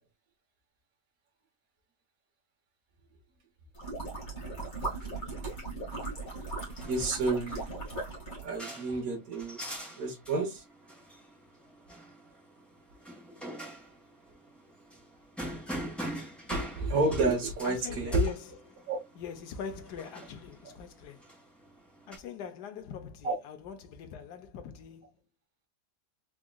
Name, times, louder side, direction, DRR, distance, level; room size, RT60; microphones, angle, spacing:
sound 1, 3.7-8.6, right 2 dB, 30° left, 2.0 m, -38 dB
voice 1, 5.0-5.5 6.8-7.7 8.4-9.6 10.0-10.6 16.5-18.2 18.9-19.0 23.2-23.3, right 2 dB, 60° right, 1.4 m, -30 dB
sound 2, 6.2-22.2, right 1 dB, ahead, 2.0 m, -44 dB
voice 2, 17.6-18.9 19.2-21.3 22.1-25.1, left 7 dB, 80° left, 1.3 m, -42 dB
4.0 x 3.6 x 2.2 m
omnidirectional pair, 1.7 m